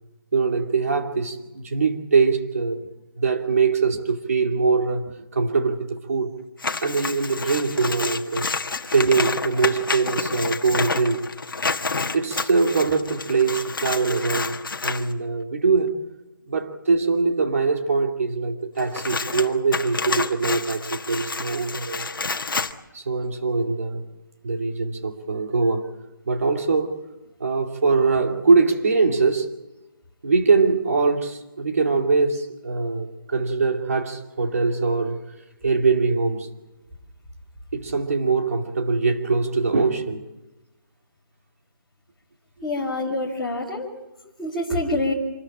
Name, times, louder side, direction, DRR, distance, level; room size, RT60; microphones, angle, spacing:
voice 1, 0.3-2.8 3.2-6.3 6.8-8.5 8.9-11.3 12.1-15.9 16.5-22.3 22.9-24.0 24.4-25.9 26.3-27.0 27.4-29.5 30.2-35.2 35.6-36.5 37.7-40.3, right 4 dB, 40° right, 2.5 m, -22 dB
sound 1, 6.6-15.1 18.8-22.7, left 4 dB, 70° left, 1.5 m, -29 dB
voice 2, 42.6-43.9 44.4-45.1, left 2 dB, ahead, 2.4 m, -26 dB
26.5 x 14.0 x 8.7 m
hypercardioid pair, 175°, 12 cm